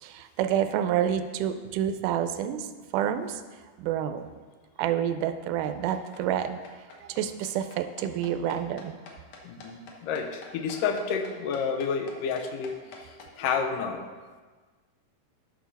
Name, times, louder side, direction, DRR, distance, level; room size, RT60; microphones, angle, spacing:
voice 1, 0.0-2.7 2.9-3.4 3.8-4.2 4.8-6.6 7.0-9.0, right 10 dB, 85° right, 9 dB, 2.1 m, -28 dB
sound 1, 5.6-13.6, left 3 dB, 60° left, 2.0 m, -47 dB
voice 2, 9.5-12.8 13.4-14.0, left 6 dB, 85° left, 6 dB, 2.4 m, -30 dB
11.5 x 6.2 x 4.1 m, 1.4 s
omnidirectional pair, 3.7 m